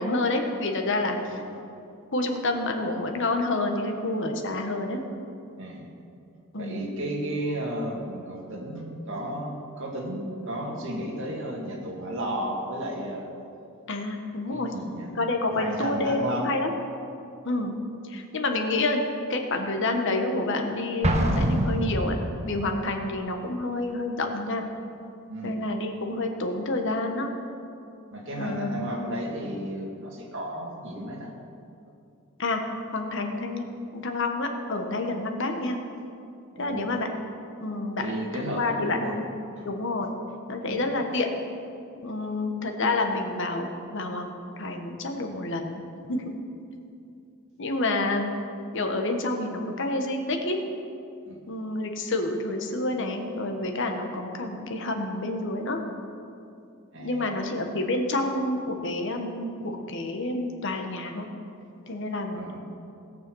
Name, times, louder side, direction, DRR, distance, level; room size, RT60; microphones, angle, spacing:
voice 1, 0.0-1.2 2.1-5.0 6.5-6.9 13.9-14.7 15.1-16.7 17.4-17.7 18.0-19.0 19.3-22.2 22.5-24.6 25.4-27.3 28.4-29.0 32.4-32.6 32.9-33.7 33.9-35.8 36.6-37.1 37.6-39.2 39.6-40.1 40.5-41.3 42.0-45.8 46.1-46.3 47.6-48.3 48.7-50.6 51.5-55.8 57.0-61.3 61.9-62.4, left 2 dB, 60° left, 4 dB, 1.3 m, -28 dB
voice 2, 5.6-5.9 6.6-13.3 14.5-15.1 15.5-16.5 25.3-25.6 28.1-31.3 36.6-36.9 38.0-39.1 40.7-40.8 51.2-51.4 56.9-57.3 62.3-62.6, right 1 dB, 60° right, -1 dB, 2.4 m, -33 dB
Explosion, 21.0-22.6, right 1 dB, 30° right, 1.2 m, -25 dB
17.5 x 6.8 x 6.3 m, 2.5 s
head